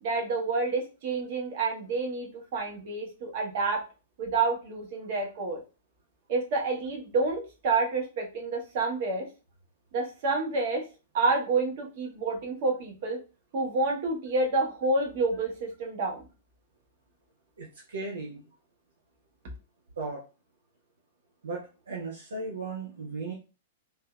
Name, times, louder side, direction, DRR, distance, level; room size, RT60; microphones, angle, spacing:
voice 1, 0.0-3.8 4.2-5.6 6.3-9.3 9.9-10.8 11.1-13.2 13.5-16.2, right 3 dB, 45° right, 1 dB, 1.0 m, -28 dB
voice 2, 17.6-18.4 20.0-20.2 21.4-23.3, right 3 dB, 65° right, -1 dB, 0.5 m, -36 dB
3.4 x 2.7 x 2.2 m, 0.32 s
figure-of-eight pair, 100°, 0 cm